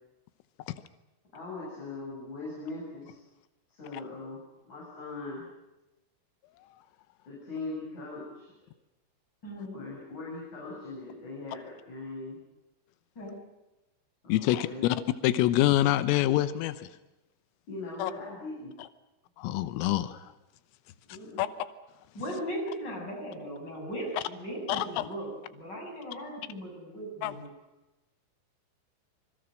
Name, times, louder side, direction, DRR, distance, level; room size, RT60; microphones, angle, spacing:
voice 1, 1.3-3.2 3.7-4.4 4.7-5.4 7.3-8.5 9.7-12.4 14.2-14.9 17.7-18.7 21.1-21.5, left 3 dB, 35° left, -4 dB, 8.3 m, -40 dB
voice 2, 9.4-9.8 13.2-13.4 22.1-27.5, equal, 20° left, 1 dB, 7.0 m, -38 dB
voice 3, 14.3-15.0 15.2-16.9 18.0-18.1 19.4-20.2 21.4-21.5 24.7-25.0 27.2-27.4, left 14 dB, 90° left, 13 dB, 3.6 m, -26 dB
26.5 x 25.0 x 6.4 m, 0.98 s
omnidirectional pair, 5.8 m